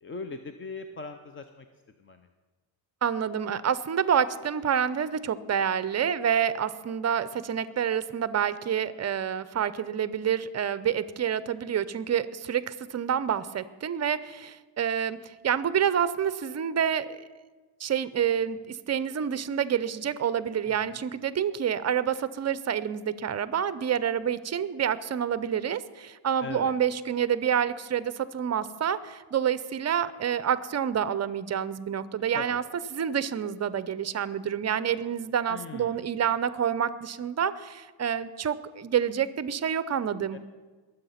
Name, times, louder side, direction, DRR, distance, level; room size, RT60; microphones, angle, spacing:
voice 1, 0.0-1.6 2.0-2.3 20.7-21.1 26.4-26.7 32.3-32.6 35.5-36.1 40.3-40.4, left 4 dB, 25° left, 8 dB, 0.7 m, -40 dB
voice 2, 3.0-17.2 17.8-32.6 32.9-40.4, right 8 dB, 35° right, 16 dB, 0.6 m, -28 dB
21.0 x 7.9 x 5.7 m, 1.3 s
cardioid pair, 125°, 49 cm